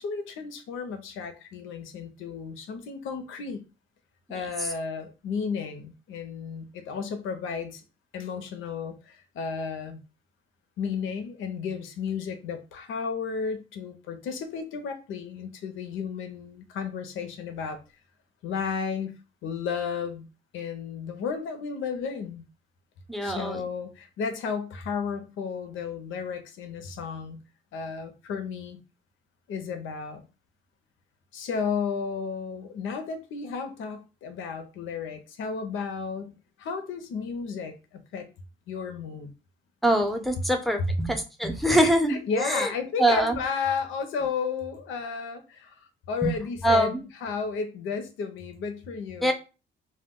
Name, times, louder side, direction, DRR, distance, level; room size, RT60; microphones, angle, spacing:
voice 1, 0.0-3.6 4.3-7.8 8.1-10.0 10.8-17.8 18.4-20.3 20.5-22.4 23.2-27.4 27.7-28.8 29.5-30.2 31.3-38.3 38.7-39.3 41.7-49.3, left 5 dB, 80° left, 0.6 m, -33 dB
voice 2, 23.1-23.6 39.8-42.7 43.0-43.3 46.2-46.3 46.6-47.0 49.2-49.3, right 1 dB, ahead, 0.5 m, -24 dB
2.2 x 2.1 x 3.5 m
cardioid pair, 100°, 20 cm